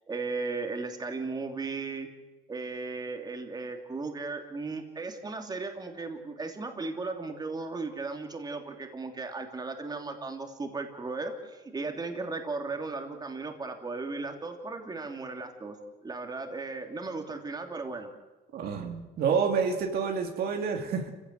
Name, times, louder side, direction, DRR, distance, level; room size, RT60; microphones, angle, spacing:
voice 1, 0.1-2.1 2.5-15.8 16.0-18.1, right 3 dB, 25° right, 4 dB, 3.1 m, -36 dB
voice 2, 18.5-21.1, right 6 dB, 65° right, 3 dB, 2.7 m, -28 dB
28.0 x 16.5 x 8.0 m, 1.2 s
cardioid pair, 110°, 17 cm